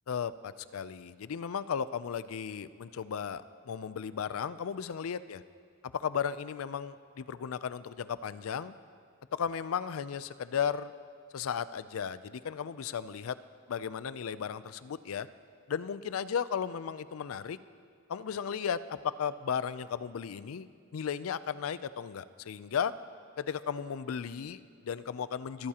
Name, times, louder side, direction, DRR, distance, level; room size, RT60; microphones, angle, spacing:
voice 1, 0.1-5.4 6.0-8.7 9.3-10.9 11.3-13.4 13.7-15.3 15.7-17.6 18.1-22.9 23.4-25.7, left 7 dB, 85° left, 15 dB, 0.4 m, -35 dB
23.5 x 13.5 x 2.9 m, 2.2 s
head